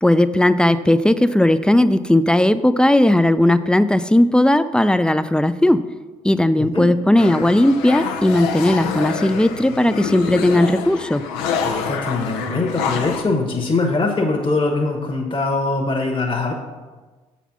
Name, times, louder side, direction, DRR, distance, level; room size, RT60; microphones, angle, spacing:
voice 1, 0.0-5.8 6.2-11.2, left 1 dB, 5° left, 13 dB, 0.4 m, -16 dB
sound 1, 7.2-13.2, left 6 dB, 85° left, 0.6 m, -26 dB
voice 2, 11.6-16.5, left 3 dB, 30° left, 0 dB, 1.2 m, -22 dB
6.9 x 4.2 x 6.0 m, 1.3 s
hypercardioid pair, 55°, 16 cm